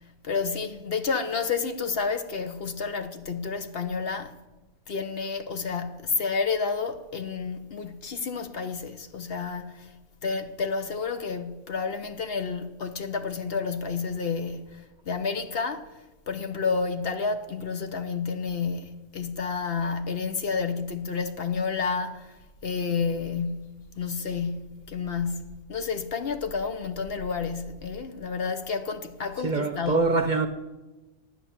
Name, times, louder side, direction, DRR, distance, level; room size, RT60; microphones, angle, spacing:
voice 1, 0.2-4.4 4.9-9.9 10.2-16.0 16.3-30.1, left 5 dB, 55° left, 1.0 m, -30 dB
voice 2, 29.4-30.5, right 3 dB, 40° right, 0.9 m, -24 dB
11.0 x 9.4 x 7.2 m
omnidirectional pair, 1.3 m